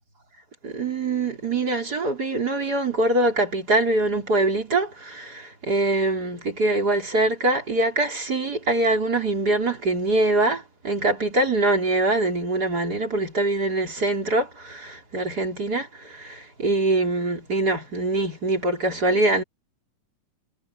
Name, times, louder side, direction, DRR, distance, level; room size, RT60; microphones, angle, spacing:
voice 1, 0.6-19.4, right 2 dB, 25° right, 4.8 m, -23 dB
omnidirectional pair, 3.8 m